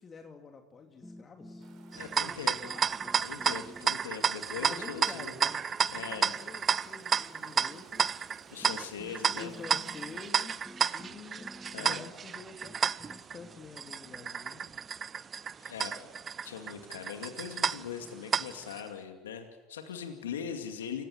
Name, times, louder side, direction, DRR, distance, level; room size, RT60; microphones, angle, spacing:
voice 1, 0.0-1.7 2.2-3.2 4.6-5.6 5.9-8.4 9.3-14.7, left 4 dB, 35° left, 4 dB, 2.7 m, -48 dB
sound 1, 1.0-2.4 2.6-4.3 4.7-7.1 8.1-8.2 8.6-16.1, left 1 dB, 10° left, 1.9 m, -52 dB
sound 2, 1.6-10.3, right 6 dB, 55° right, 6.5 m, -59 dB
voice 2, 1.9-2.7 3.2-5.4 5.9-6.3 8.5-9.5 11.7-12.0 15.6-16.1 16.4-21.0, left 7 dB, 90° left, 5 dB, 2.3 m, -41 dB
sound 3, 1.9-18.8, right 7 dB, 35° right, 0.8 m, -32 dB
28.5 x 16.5 x 9.6 m, 1.2 s
hypercardioid pair, 75°, 0 cm